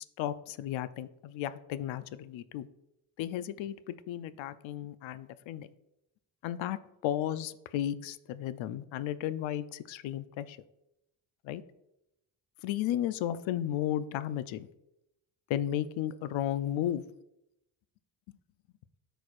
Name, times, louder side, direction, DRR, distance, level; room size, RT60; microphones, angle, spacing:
voice 1, 0.0-2.7 3.2-5.7 6.4-6.8 7.0-10.6 11.4-11.6 12.6-14.7 15.5-17.0, left 11 dB, 70° left, 14 dB, 0.6 m, -34 dB
13.5 x 4.5 x 2.5 m, 0.85 s
supercardioid pair, 50°, 48 cm